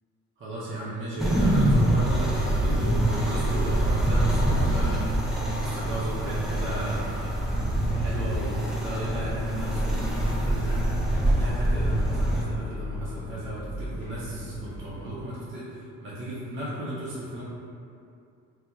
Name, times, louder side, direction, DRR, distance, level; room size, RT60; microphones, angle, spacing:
voice 1, 0.4-7.4 7.9-10.8 11.3-17.4, right 1 dB, 45° right, -8 dB, 0.6 m, -35 dB
sound 1, 1.2-12.4, right 1 dB, ahead, 0.3 m, -25 dB
sound 2, 8.8-15.1, equal, 35° left, 1.1 m, -34 dB
2.3 x 2.3 x 2.9 m, 2.5 s
cardioid pair, 90°, 30 cm